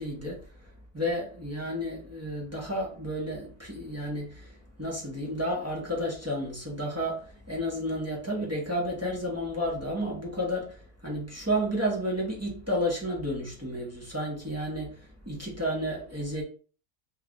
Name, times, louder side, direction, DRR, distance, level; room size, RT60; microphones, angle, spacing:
voice 1, 0.0-16.4, equal, 15° right, 0.7 m, -32 dB
3.1 x 2.3 x 3.7 m
omnidirectional pair, 1.5 m